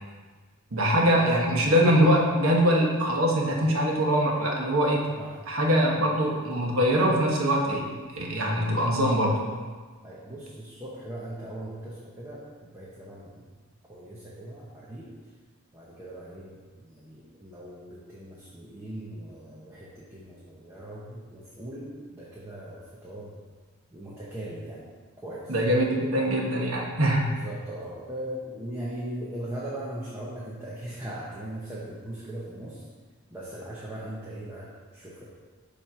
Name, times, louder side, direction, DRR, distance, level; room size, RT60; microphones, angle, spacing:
voice 1, 0.7-5.0 5.5-7.8 8.1-9.4 25.5-25.8 26.1-27.3, equal, 75° right, -1 dB, 1.2 m, -23 dB
voice 2, 10.0-13.6 13.9-15.1 15.7-23.3 23.9-24.9 25.2-25.5 27.4-32.8 33.3-35.2, right 1 dB, 10° right, -7 dB, 0.9 m, -39 dB
7.4 x 3.3 x 5.7 m, 1.5 s
head